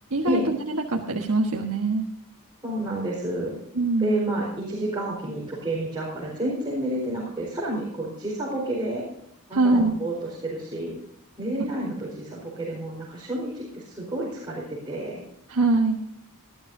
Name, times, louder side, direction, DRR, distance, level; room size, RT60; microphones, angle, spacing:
voice 1, 0.1-2.0 3.7-4.1 9.5-9.9 15.5-16.0, right 2 dB, 80° right, 1 dB, 1.4 m, -23 dB
voice 2, 2.6-3.5 4.0-9.0 9.5-10.9 11.4-15.2, right 1 dB, 20° right, -6 dB, 4.6 m, -30 dB
19.5 x 12.5 x 2.7 m, 0.76 s
head